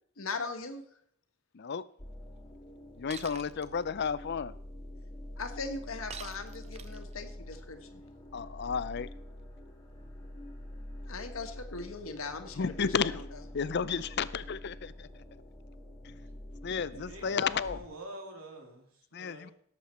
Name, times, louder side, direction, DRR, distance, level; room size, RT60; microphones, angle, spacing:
voice 1, 0.2-0.8 5.4-8.0 11.1-12.9, left 4 dB, 80° left, 1.3 m, -39 dB
sound 1, 2.0-17.8, left 1 dB, 15° left, 2.2 m, -46 dB
voice 2, 3.0-4.5 8.3-9.1 12.6-13.2 13.5-15.1 16.0-16.1 16.6-17.8 19.1-19.5, left 6 dB, 55° left, 0.5 m, -32 dB
Shatter, 3.1-3.7 6.1-7.1, right 6 dB, 30° right, 0.6 m, -45 dB
voice 3, 16.9-19.5, right 1 dB, 90° right, 2.7 m, -47 dB
17.0 x 7.5 x 4.3 m
head